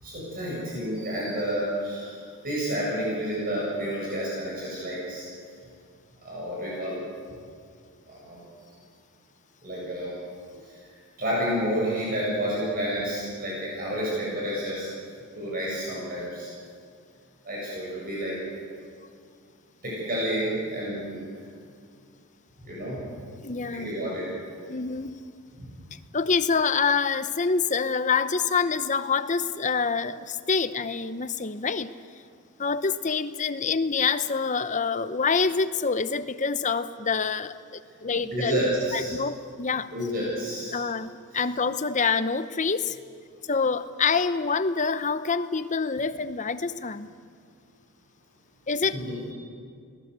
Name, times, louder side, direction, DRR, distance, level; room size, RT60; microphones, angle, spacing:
voice 1, 0.0-5.2 6.2-7.0 8.1-8.4 9.6-10.1 10.5-10.6 11.2-14.9 15.3-16.5 17.4-18.4 19.8-21.2 22.6-23.0 23.7-24.3 38.3-39.1 39.9-40.8 48.9-49.2, equal, 40° right, -5 dB, 7.6 m, -30 dB
voice 2, 23.4-23.9 24.7-25.2 26.1-31.9 32.6-38.6 38.9-39.9 40.7-43.0 43.5-47.1 48.7-49.0, left 5 dB, 35° left, 12 dB, 0.8 m, -26 dB
29.0 x 19.5 x 8.3 m, 2.2 s
head